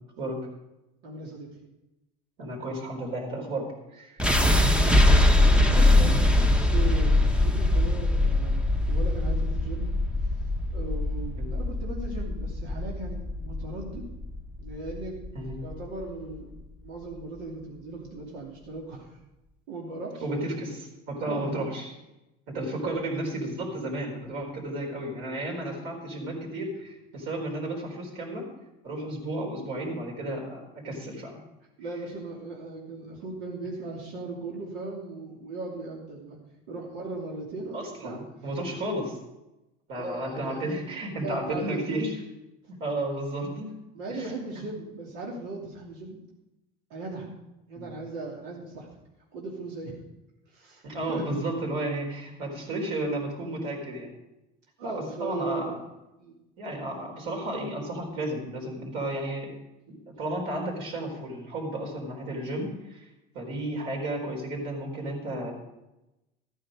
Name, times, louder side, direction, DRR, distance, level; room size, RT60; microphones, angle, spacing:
voice 1, 1.0-1.5 4.5-5.1 5.4-9.9 10.7-14.0 14.6-15.2 15.6-16.5 16.8-19.2 19.7-20.2 21.3-21.6 22.8-23.1 31.8-36.4 36.7-38.2 39.9-42.0 43.9-46.2 46.9-47.3 47.7-48.9 49.3-50.0 50.5-51.4 54.8-55.8 56.2-56.3, right 3 dB, 90° right, -2 dB, 2.8 m, -38 dB
voice 2, 2.4-3.7 3.9-4.2 11.4-11.5 15.3-15.6 20.2-21.9 22.5-28.5 28.8-31.4 37.7-39.2 39.9-42.1 42.8-43.7 44.1-44.3 47.7-47.9 50.8-54.1 54.8-55.8 56.6-59.5 59.9-63.1 63.3-65.5, right 1 dB, 65° right, 0 dB, 4.3 m, -33 dB
sound 1, 4.2-16.2, left 1 dB, 5° right, 0.7 m, -22 dB
13.5 x 9.4 x 5.1 m, 0.95 s
cardioid pair, 145°, 21 cm